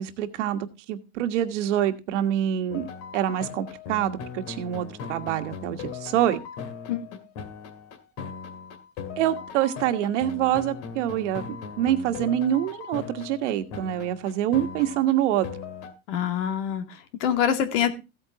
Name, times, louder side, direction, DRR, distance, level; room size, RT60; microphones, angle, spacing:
voice 1, 0.0-2.9 3.1-6.4 9.2-15.5, right 11 dB, 90° right, 8 dB, 1.5 m, -26 dB
sound 1, 2.7-15.9, left 6 dB, 60° left, 2.4 m, -39 dB
voice 2, 16.1-17.9, left 9 dB, 85° left, 7 dB, 2.3 m, -25 dB
15.5 x 8.8 x 2.9 m, 0.27 s
supercardioid pair, 160°, 35 cm